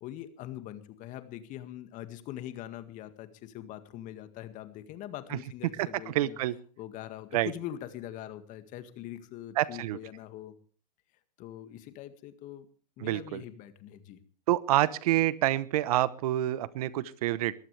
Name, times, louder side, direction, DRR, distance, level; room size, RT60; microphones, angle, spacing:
voice 1, 0.0-6.4 6.8-10.5 11.4-12.7 13.0-14.2, left 12 dB, 35° left, 10 dB, 1.9 m, -43 dB
voice 2, 5.8-6.6 7.3-7.5 9.6-10.0 13.0-13.4 14.5-17.5, right 15 dB, 60° right, 18 dB, 1.0 m, -27 dB
22.0 x 14.5 x 3.4 m, 0.41 s
hypercardioid pair, 120°, 21 cm